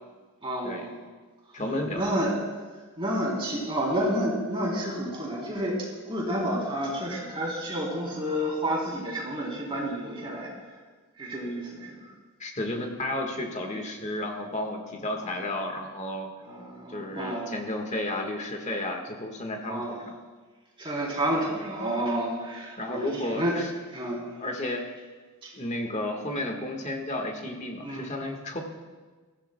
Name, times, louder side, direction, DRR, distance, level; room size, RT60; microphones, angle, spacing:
voice 1, 0.4-0.9 1.9-2.4 3.0-10.5 11.2-12.0 15.2-15.3 16.4-17.6 19.7-20.0 20.8-23.6 23.9-24.3 25.4-25.5 27.8-28.1, right 1 dB, 25° right, -3 dB, 3.4 m, -30 dB
voice 2, 1.5-2.2 12.4-16.3 16.9-20.1 22.8-23.7 24.4-24.9 25.5-28.6, left 1 dB, 30° left, 3 dB, 1.5 m, -32 dB
22.0 x 15.0 x 2.2 m, 1.4 s
head